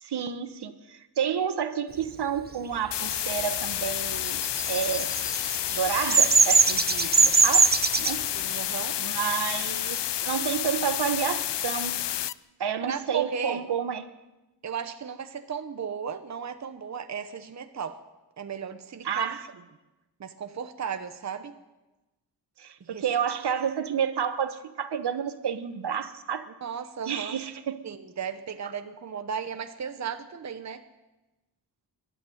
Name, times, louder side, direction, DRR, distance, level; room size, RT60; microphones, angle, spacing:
voice 1, 0.0-4.4 4.7-5.1 5.7-7.7 8.0-8.3 9.0-12.0 12.6-14.0 19.0-19.5 22.6-26.5 27.1-27.9, right 8 dB, 70° right, 10 dB, 1.4 m, -30 dB
sound 1, 2.9-12.3, left 12 dB, 80° left, 0.7 m, -30 dB
Bird vocalization bird call bird song, 4.4-8.1, right 5 dB, 25° right, 0.6 m, -20 dB
voice 2, 8.3-9.0 12.9-13.6 14.6-18.0 18.4-19.4 20.2-21.5 22.8-23.0 26.6-27.4 27.8-30.8, right 7 dB, 40° right, 8 dB, 1.0 m, -35 dB
23.0 x 12.5 x 9.4 m, 1.1 s
wide cardioid pair, 160°, 41 cm